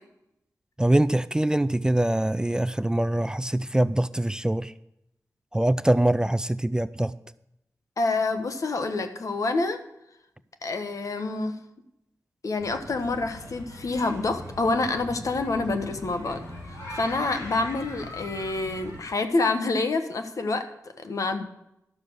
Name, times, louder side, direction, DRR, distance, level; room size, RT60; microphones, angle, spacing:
voice 1, 0.8-4.7 5.5-7.1, right 1 dB, 10° right, 15 dB, 0.4 m, -23 dB
voice 2, 8.0-9.8 10.6-11.6 12.4-16.4 16.9-20.6 21.0-21.5, left 3 dB, 65° left, 7 dB, 1.2 m, -27 dB
sound 1, 12.6-19.0, left 1 dB, 85° left, 4.6 m, -41 dB
12.0 x 6.7 x 6.3 m, 0.83 s
cardioid pair, 70°, 6 cm